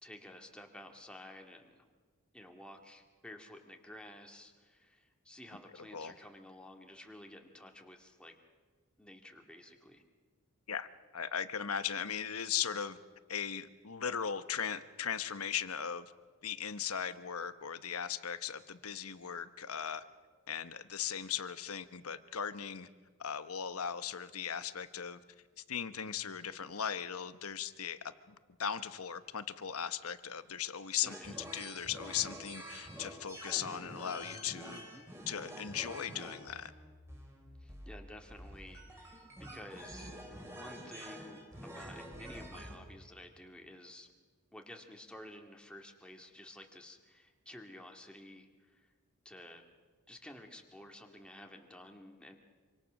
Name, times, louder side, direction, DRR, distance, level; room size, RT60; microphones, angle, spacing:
voice 1, 0.0-1.9 2.3-8.3 9.0-10.0 31.0-31.4 34.7-35.1 37.6-40.1 40.5-44.1 44.5-48.9 49.2-49.6 50.1-52.4, left 1 dB, 5° left, 2 dB, 2.2 m, -52 dB
voice 2, 11.1-13.0 13.3-16.1 16.4-20.0 20.5-22.9 23.2-25.2 25.7-34.8 35.3-36.7, left 8 dB, 70° left, 12 dB, 1.1 m, -38 dB
sound 1, 31.1-42.8, equal, 10° right, 4.4 m, -48 dB
26.5 x 25.5 x 6.5 m, 1.4 s
head